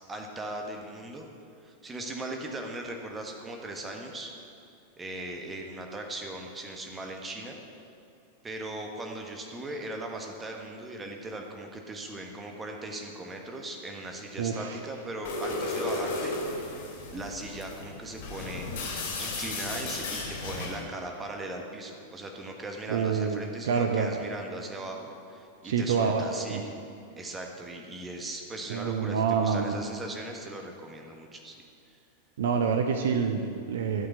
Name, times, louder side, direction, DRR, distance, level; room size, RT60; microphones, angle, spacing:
voice 1, 0.1-1.3 1.6-4.3 5.0-7.6 8.4-16.9 17.1-18.7 19.2-26.8 27.2-31.5 31.9-32.0, right 2 dB, 15° right, 2 dB, 1.5 m, -39 dB
voice 2, 14.4-14.8 22.9-24.1 25.6-26.6 28.7-29.7 32.4-34.1, right 6 dB, 60° right, 5 dB, 0.7 m, -27 dB
sound 1, 15.2-20.8, left 2 dB, 50° left, 3.1 m, -34 dB
12.5 x 5.8 x 8.1 m, 2.5 s
figure-of-eight pair, 90°, 0 cm